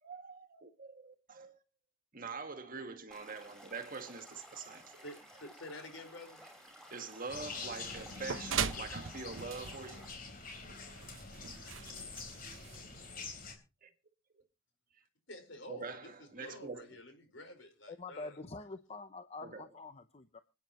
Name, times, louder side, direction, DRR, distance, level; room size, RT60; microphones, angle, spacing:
voice 1, 0.0-1.6 2.1-5.0 6.9-10.1 13.8-13.9 15.7-16.9 19.4-19.6, right 4 dB, 45° right, 1.7 m, -44 dB
Stream / Liquid, 3.1-10.1, equal, 5° left, 5.8 m, -55 dB
voice 2, 5.0-6.4 15.3-18.4, left 1 dB, 75° left, 4.8 m, -49 dB
sound 1, 7.3-13.5, left 4 dB, 50° left, 3.7 m, -46 dB
sound 2, 8.0-13.3, right 7 dB, 85° right, 0.9 m, -41 dB
voice 3, 17.9-20.4, left 3 dB, 35° left, 0.8 m, -46 dB
25.5 x 9.5 x 3.0 m
head